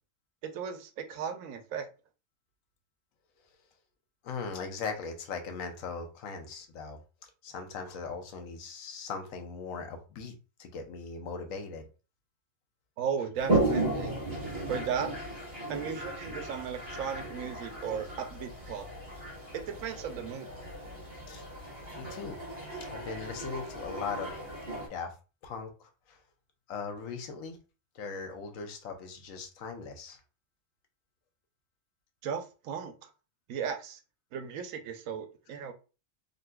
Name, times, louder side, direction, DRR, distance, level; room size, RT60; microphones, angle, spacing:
voice 1, 0.4-1.9 13.0-14.1 14.7-15.1 15.7-18.9 19.5-20.5 32.2-33.1 33.5-34.0 34.3-35.7, right 7 dB, 85° right, 1.0 m, -36 dB
voice 2, 4.2-10.3 10.6-11.9 21.3-21.4 22.0-22.4 22.9-24.4 24.8-25.1 25.4-26.2 26.7-27.6 27.9-30.2, left 5 dB, 85° left, 1.1 m, -39 dB
Toilet flush, 13.4-24.9, right 2 dB, 50° right, 1.5 m, -35 dB
3.9 x 2.5 x 2.2 m
omnidirectional pair, 1.4 m